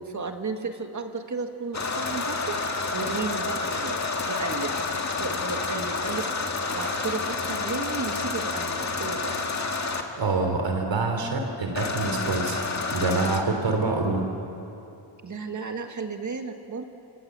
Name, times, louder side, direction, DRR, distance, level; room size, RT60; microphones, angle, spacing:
voice 1, 0.0-2.6 2.9-4.9 5.2-6.3 6.7-9.4 15.2-16.8, right 4 dB, 35° right, 5 dB, 1.8 m, -33 dB
sound 1, 1.7-10.0 11.7-13.4, left 3 dB, 35° left, 2.0 m, -29 dB
voice 2, 10.1-12.6 12.9-14.3, right 3 dB, 65° right, 4 dB, 3.1 m, -26 dB
27.0 x 26.0 x 7.6 m, 2.9 s
wide cardioid pair, 150°, 48 cm